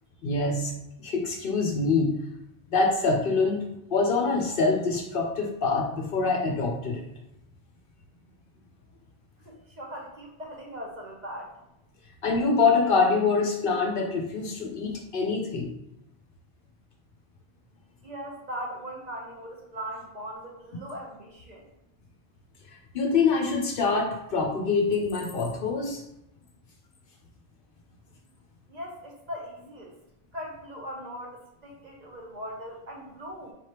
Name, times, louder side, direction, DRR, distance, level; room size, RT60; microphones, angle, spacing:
voice 1, 0.2-0.7 1.0-2.2 2.7-3.6 3.9-7.0 12.2-15.7 22.9-26.0, left 4 dB, 60° left, 2 dB, 0.7 m, -25 dB
voice 2, 9.4-11.5 18.0-21.6 28.7-29.9 30.3-33.5, equal, 45° right, -1 dB, 0.7 m, -39 dB
4.1 x 3.3 x 2.8 m, 0.85 s
omnidirectional pair, 1.1 m